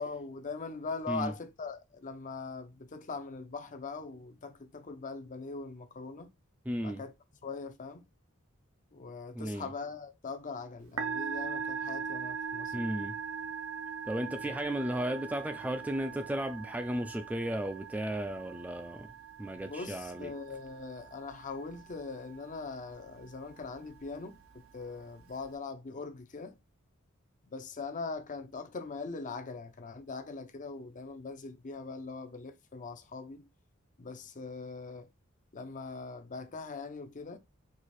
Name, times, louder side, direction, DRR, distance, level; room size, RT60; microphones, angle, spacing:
voice 1, 0.0-6.3 6.8-7.1 7.4-8.1 8.9-13.1 14.4-14.6 19.6-26.6 27.5-33.5 34.0-35.1 35.5-37.4, left 4 dB, 40° left, 0.6 m, -41 dB
voice 2, 6.7-7.0 9.3-9.7 12.7-13.2 14.1-19.1 19.4-20.3, right 1 dB, 5° right, 0.4 m, -34 dB
Musical instrument, 10.8-25.5, right 6 dB, 80° right, 0.7 m, -41 dB
4.9 x 2.4 x 4.1 m
head